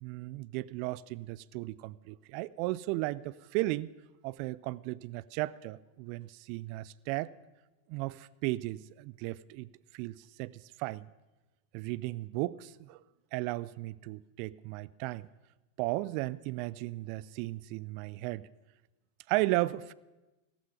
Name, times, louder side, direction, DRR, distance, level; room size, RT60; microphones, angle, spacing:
voice 1, 0.0-3.9 4.2-7.3 7.9-11.1 11.7-13.0 13.3-15.3 15.8-18.5 19.3-19.9, right 19 dB, 45° right, 20 dB, 0.4 m, -35 dB
14.5 x 13.5 x 5.9 m, 1.1 s
figure-of-eight pair, 90°, 0 cm